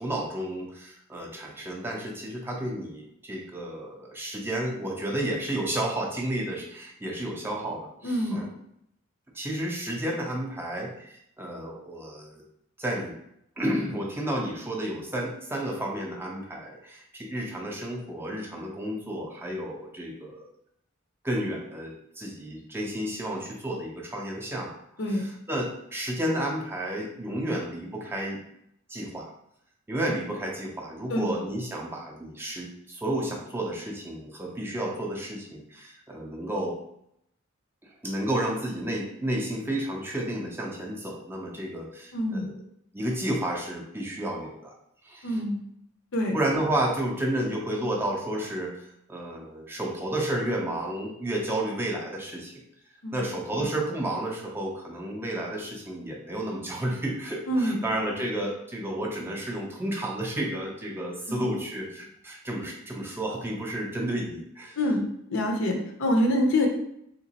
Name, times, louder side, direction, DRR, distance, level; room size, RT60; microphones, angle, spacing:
voice 1, 0.0-8.5 9.3-12.4 12.8-13.1 13.6-20.5 21.2-24.7 25.0-28.4 28.9-29.3 29.9-36.8 37.8-42.6 42.9-44.7 45.0-45.4 46.3-48.7 49.1-52.5 53.1-64.8, right 1 dB, 10° right, -1 dB, 0.4 m, -31 dB
voice 2, 8.0-8.5 25.0-25.2 31.1-31.3 42.1-42.5 45.2-45.6 46.1-46.3 53.0-53.2 57.5-57.8 61.3-61.4 64.8-65.0 65.3-66.7, left 1 dB, 60° left, 3 dB, 0.6 m, -25 dB
3.6 x 2.9 x 2.8 m, 0.74 s
head